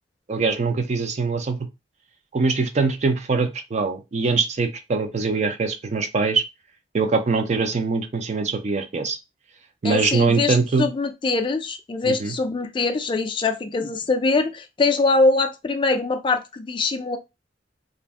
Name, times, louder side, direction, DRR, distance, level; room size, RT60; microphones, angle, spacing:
voice 1, 0.3-1.6 2.3-6.4 6.9-9.2 9.8-10.9 12.0-12.3, right 4 dB, 40° right, 0.4 m, -23 dB
voice 2, 9.8-17.2, left 3 dB, 30° left, 0.3 m, -23 dB
2.5 x 2.1 x 3.4 m
head